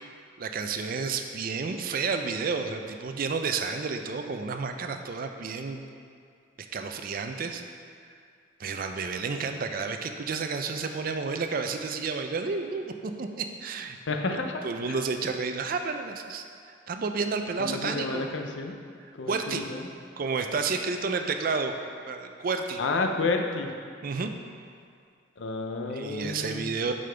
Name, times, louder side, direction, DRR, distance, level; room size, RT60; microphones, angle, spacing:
voice 1, 0.4-5.8 6.7-7.6 8.6-14.0 14.3-18.3 19.3-19.6 20.2-21.7 22.1-22.8 24.0-24.3 25.9-26.9, right 4 dB, 45° right, 6 dB, 0.4 m, -31 dB
voice 2, 14.1-15.0 17.6-18.7 19.1-19.9 22.8-23.7 25.4-26.7, left 3 dB, 65° left, 4 dB, 0.6 m, -30 dB
7.5 x 5.2 x 3.3 m, 2.3 s
head